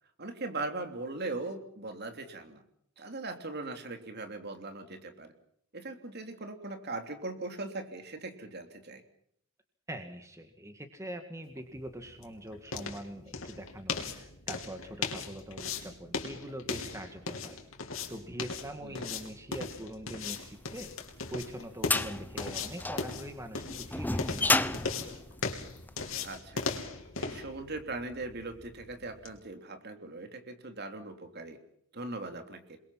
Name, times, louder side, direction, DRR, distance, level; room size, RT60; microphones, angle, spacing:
voice 1, 0.2-2.6 3.0-5.3 5.7-9.0 18.8-19.1 26.2-26.7 27.2-31.6 31.9-32.8, right 2 dB, 50° right, 6 dB, 3.2 m, -40 dB
voice 2, 9.9-17.6 17.8-20.9 21.3-25.1, right 1 dB, 15° right, 6 dB, 1.9 m, -43 dB
sound 1, 11.6-29.4, left 4 dB, 70° left, 3.4 m, -39 dB
sound 2, 20.8-26.2, left 2 dB, 10° left, 0.9 m, -31 dB
28.0 x 22.0 x 5.8 m, 0.69 s
head